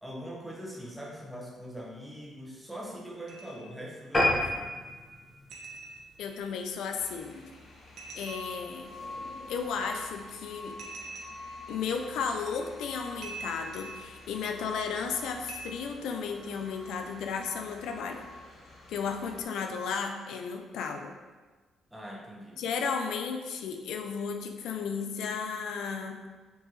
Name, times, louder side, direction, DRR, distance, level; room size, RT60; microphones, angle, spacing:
voice 1, 0.0-4.7 21.9-22.6, equal, 5° right, -2 dB, 0.9 m, -42 dB
sound 1, 3.3-3.7 4.2-4.3 5.5-6.3 8.0-8.7 10.8-11.6 12.5-12.6 13.2-14.1 15.5-15.6, right 3 dB, 70° right, 0.7 m, -44 dB
sound 2, 4.1-6.9 7.4-7.6 8.0-8.1 8.4-8.5 8.7-8.8, left 1 dB, 20° left, 1.1 m, -30 dB
voice 2, 6.2-7.5 8.2-8.9 9.5-10.8 11.7-18.2 18.9-21.2 22.6-26.3, left 6 dB, 80° left, 4 dB, 0.4 m, -34 dB
sound 3, 7.0-19.4, left 2 dB, 60° left, 0.9 m, -46 dB
4.5 x 2.8 x 3.1 m, 1.3 s
cardioid pair, 90°, 0 cm